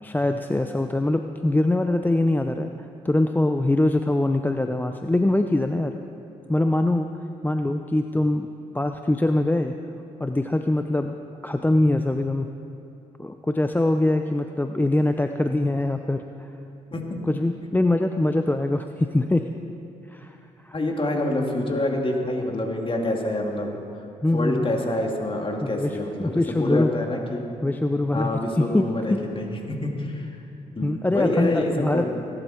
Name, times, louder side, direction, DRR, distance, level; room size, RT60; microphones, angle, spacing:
voice 1, 0.0-2.7 3.0-5.9 6.5-7.1 7.4-8.5 8.7-9.7 10.2-11.2 11.4-12.5 13.2-16.5 17.3-19.5 20.1-20.4 20.6-20.8 21.6-21.8 24.2-24.8 25.6-26.9 27.6-28.3 28.6-29.2 30.8-32.1, left 1 dB, 10° left, 6 dB, 0.7 m, -23 dB
voice 2, 20.7-23.7 24.3-26.3 26.6-27.4 28.1-30.3 30.7-32.1, left 1 dB, 35° left, 1 dB, 2.9 m, -26 dB
21.0 x 11.5 x 4.5 m, 2.8 s
supercardioid pair, 55°, 16 cm